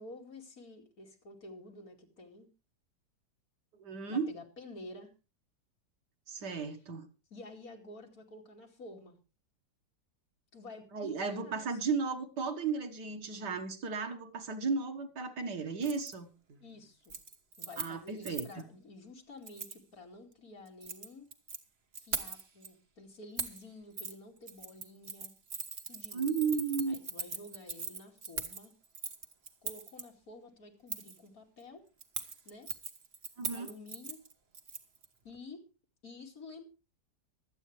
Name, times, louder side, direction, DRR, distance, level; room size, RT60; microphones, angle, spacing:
voice 1, 0.0-2.5 4.1-5.1 7.3-9.2 10.5-11.8 16.6-17.2 17.6-21.3 22.0-25.3 25.9-26.3 26.9-28.7 29.6-31.8 32.4-32.7 33.5-34.2 35.2-35.6 36.0-36.6, left 2 dB, 60° left, 2.9 m, -50 dB
voice 2, 3.7-4.3 6.3-7.1 10.9-16.3 17.8-18.5 26.1-27.0 33.4-33.7, right 5 dB, 85° right, 2.2 m, -34 dB
Keys jangling, 15.8-16.1 16.5-16.8 17.0-18.6 19.5-19.8 20.7-21.6 21.9-22.7 23.4-23.6 24.0-24.1 24.5-30.0 30.9-31.2 32.0-35.1 35.3-35.4, right 5 dB, 40° right, 1.4 m, -41 dB
24.5 x 8.6 x 3.3 m
omnidirectional pair, 1.8 m